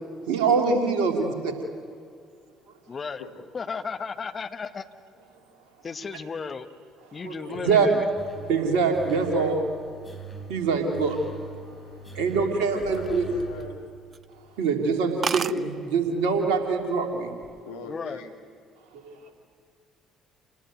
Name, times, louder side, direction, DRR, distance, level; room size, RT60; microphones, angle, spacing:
voice 1, 0.3-1.5 7.1-7.9 8.5-9.6 10.5-11.2 12.1-13.3 14.5-17.3 18.9-19.3, right 5 dB, 70° right, 3 dB, 3.1 m, -24 dB
voice 2, 2.9-3.2 3.5-4.8 5.8-6.7 7.1-8.0 17.9-18.2, left 5 dB, 35° left, 9 dB, 1.4 m, -34 dB
sound 1, 8.2-13.7, right 2 dB, 10° left, 4.3 m, -42 dB
voice 3, 9.2-9.6 12.3-13.8 17.6-18.4, left 4 dB, 80° left, 2 dB, 2.6 m, -41 dB
sound 2, 12.7-13.8 14.1-14.3 14.7-14.8 15.0-15.1 15.2-15.6 16.5-16.8 17.2-17.6, right 6 dB, 40° right, 0.6 m, -31 dB
28.0 x 19.5 x 9.3 m, 2.3 s
figure-of-eight pair, 50°, 0 cm